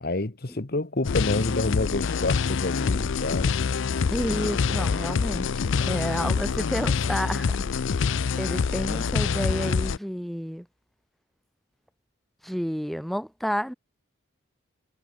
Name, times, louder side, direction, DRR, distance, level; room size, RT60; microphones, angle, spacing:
voice 1, 0.0-3.6, left 2 dB, 50° left, 1.3 m, -28 dB
sound 1, 1.0-10.0, left 5 dB, 70° left, 0.5 m, -26 dB
voice 2, 4.1-8.0 8.4-10.7 12.4-13.7, equal, ahead, 1.6 m, -30 dB
head